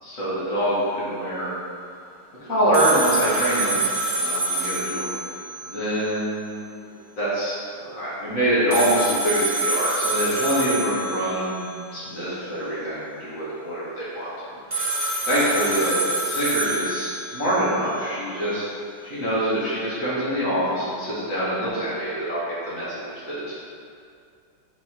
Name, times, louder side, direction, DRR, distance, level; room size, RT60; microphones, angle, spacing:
voice 1, 0.0-1.5 2.5-3.8 4.1-5.1 5.6-6.9 7.2-14.8 15.2-18.6 19.0-23.6, right 1 dB, 40° left, -10 dB, 2.0 m, -25 dB
sound 1, 2.7-5.8 6.1-6.2 8.7-11.7 14.7-17.7, right 2 dB, 40° right, 0.4 m, -27 dB
5.3 x 4.2 x 4.5 m, 2.4 s
omnidirectional pair, 2.3 m